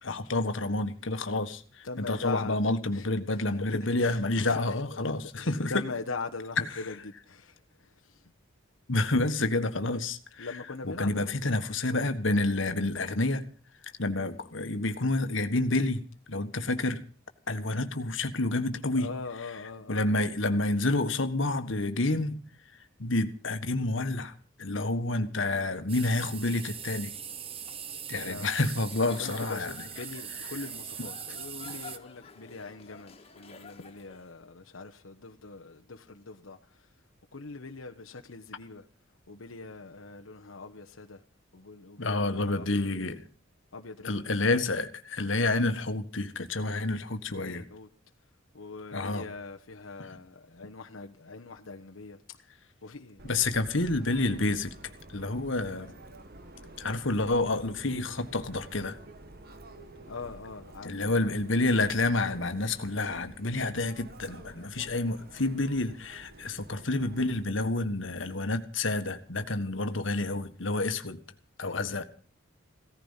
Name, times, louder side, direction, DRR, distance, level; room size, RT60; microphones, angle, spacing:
voice 1, 0.0-5.7 8.9-10.5 10.8-13.4 13.8-16.0 16.3-17.0 17.5-19.1 19.9-22.4 23.0-24.3 24.6-27.1 28.1-29.7 42.0-43.2 44.0-47.6 48.9-49.2 53.2-54.7 55.1-55.9 56.8-59.0 60.8-71.2 71.6-72.0, left 2 dB, 65° left, 1.5 m, -29 dB
voice 2, 1.8-2.6 2.9-8.3 10.4-11.3 18.9-20.1 28.2-28.5 29.0-36.9 37.3-38.9 39.3-41.2 41.5-42.8 43.7-44.3 47.3-47.9 48.5-52.4 52.8-53.2 60.1-61.2 71.6-71.9, left 3 dB, 85° left, 1.2 m, -42 dB
sound 1, 25.9-32.0, right 8 dB, 30° right, 1.0 m, -41 dB
Giggle / Chuckle chortle, 28.8-34.3, left 5 dB, 30° left, 2.2 m, -50 dB
Subway metro underground, 53.2-67.4, right 1 dB, 50° right, 1.7 m, -50 dB
17.0 x 14.5 x 5.7 m
head